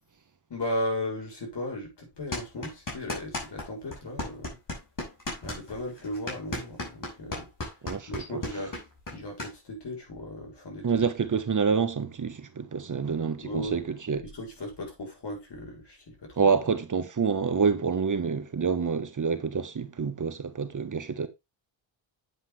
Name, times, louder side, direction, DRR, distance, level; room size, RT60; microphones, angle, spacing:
voice 1, 0.5-4.6 5.4-7.5 8.1-8.7 9.1-11.0 13.4-13.8 14.3-16.6, left 1 dB, 60° left, 6.7 m, -36 dB
sound 1, 2.3-3.7 3.9-9.5, left 2 dB, 40° left, 5.9 m, -35 dB
voice 2, 7.8-8.4 10.8-14.2 16.4-21.3, right 5 dB, 40° right, 1.3 m, -27 dB
9.1 x 8.3 x 3.4 m
cardioid pair, 75°, 47 cm